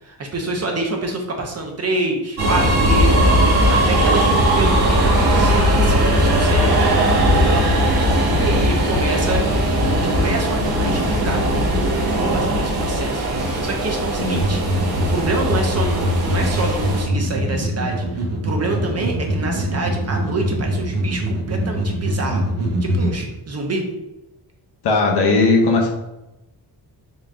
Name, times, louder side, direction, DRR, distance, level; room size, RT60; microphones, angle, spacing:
voice 1, 0.0-4.3 4.6-4.8 5.2-9.4 10.0-13.3 13.6-22.4 22.8-23.8, right 2 dB, 35° right, 2 dB, 0.8 m, -27 dB
sound 1, 2.4-17.0, equal, 65° right, 1.0 m, -18 dB
sound 2, 14.3-23.1, equal, 80° right, 0.9 m, -23 dB
voice 2, 24.8-25.9, left 3 dB, 70° left, 1 dB, 0.9 m, -17 dB
4.0 x 3.4 x 2.5 m, 0.96 s
cardioid pair, 100°, 41 cm